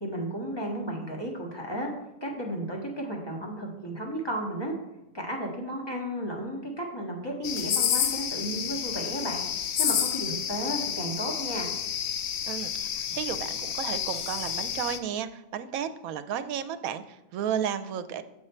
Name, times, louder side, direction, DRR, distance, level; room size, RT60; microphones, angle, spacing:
voice 1, 0.0-1.9 2.2-4.7 5.1-9.4 9.8-11.7, right 1 dB, 20° left, -1 dB, 1.5 m, -33 dB
sound 1, 7.4-15.0, left 9 dB, 60° left, 0.8 m, -30 dB
voice 2, 12.5-18.2, right 8 dB, 80° right, 11 dB, 1.0 m, -33 dB
6.9 x 6.0 x 4.3 m, 0.94 s
omnidirectional pair, 1.5 m